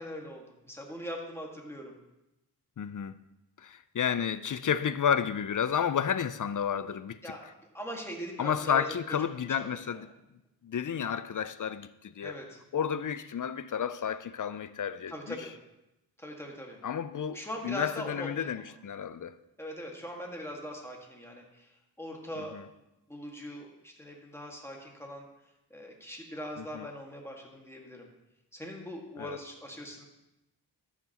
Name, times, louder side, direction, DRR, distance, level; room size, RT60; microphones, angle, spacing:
voice 1, 0.0-2.0 7.2-9.0 9.5-10.0 12.2-12.6 15.1-15.5 16.2-16.8 17.3-18.7 19.6-21.7 22.0-22.6 23.1-25.3 25.7-28.1 28.5-30.0, equal, 5° left, 1.8 m, -41 dB
voice 2, 2.8-3.2 3.6-7.3 8.4-10.1 10.6-12.4 12.7-15.4 16.8-19.3 22.5-22.6 26.6-26.9 29.2-29.4, left 8 dB, 50° left, 0.5 m, -31 dB
13.5 x 5.9 x 3.0 m
cardioid pair, 55°, 42 cm